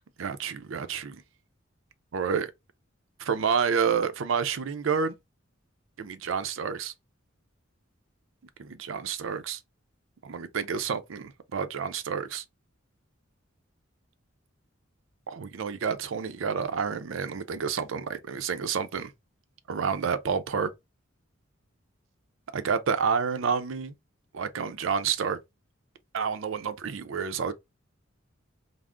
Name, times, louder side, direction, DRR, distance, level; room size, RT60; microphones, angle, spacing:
voice 1, 0.2-1.2 2.1-2.5 3.2-5.1 6.0-6.9 8.6-9.6 10.2-12.4 15.3-19.1 19.7-20.7 22.5-23.9 24.3-25.4 26.1-27.5, right 6 dB, 70° right, 0.5 m, -29 dB
3.5 x 2.0 x 3.6 m
head